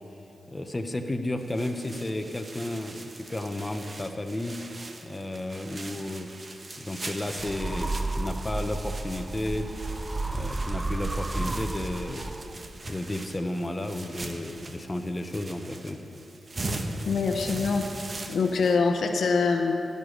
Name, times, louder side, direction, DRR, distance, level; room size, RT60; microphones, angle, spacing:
voice 1, 0.5-4.6 5.0-6.3 6.8-9.7 10.3-12.3 12.9-16.0, left 1 dB, 20° left, 5 dB, 1.0 m, -33 dB
sound 1, 1.4-18.8, right 2 dB, 40° right, 1.1 m, -40 dB
sound 2, 7.4-12.7, right 2 dB, 25° right, 0.5 m, -32 dB
voice 2, 17.1-17.8 18.3-19.7, left 4 dB, 70° left, 4 dB, 0.9 m, -24 dB
17.0 x 6.9 x 6.6 m, 2.9 s
cardioid pair, 55°, 0 cm